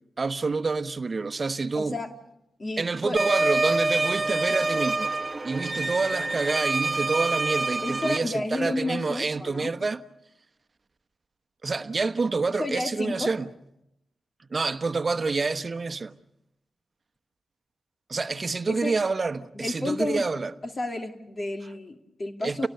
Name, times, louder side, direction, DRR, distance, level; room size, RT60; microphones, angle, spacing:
voice 1, 0.2-2.0 2.8-5.1 5.4-10.0 11.6-13.5 14.5-16.2 18.1-20.5 22.4-22.7, right 4 dB, 45° right, 1.1 m, -27 dB
voice 2, 1.7-2.1 2.6-3.2 7.8-9.7 12.6-13.3 18.7-18.9 19.5-20.2 20.8-22.7, left 2 dB, 40° left, 2.8 m, -31 dB
sound 1, 3.2-8.2, right 3 dB, 30° right, 1.4 m, -26 dB
30.0 x 18.0 x 6.8 m
supercardioid pair, 45°, 0 cm